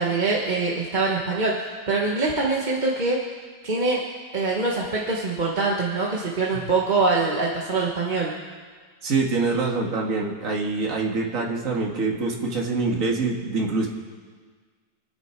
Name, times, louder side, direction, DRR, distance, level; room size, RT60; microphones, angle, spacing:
voice 1, 0.0-3.2 3.6-4.0 4.3-8.3, right 3 dB, 30° right, -3 dB, 1.3 m, -24 dB
voice 2, 9.0-13.9, right 3 dB, 45° right, -1 dB, 2.2 m, -25 dB
27.5 x 9.7 x 4.6 m, 1.5 s
omnidirectional pair, 2.0 m